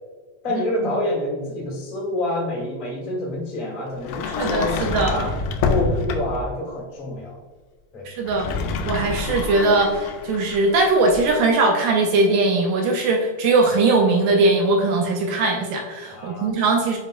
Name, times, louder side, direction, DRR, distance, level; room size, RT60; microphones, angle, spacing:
voice 1, 0.4-5.3 5.7-7.4 7.9-8.0 16.1-16.5, left 1 dB, 55° left, -4 dB, 0.5 m, -27 dB
Sliding door, 4.0-6.5 8.2-11.3, left 4 dB, 80° left, 2.1 m, -27 dB
voice 2, 4.3-5.2 8.1-8.5 8.9-17.0, right 3 dB, 80° right, 2 dB, 2.0 m, -20 dB
7.2 x 5.3 x 2.5 m, 1.4 s
omnidirectional pair, 4.2 m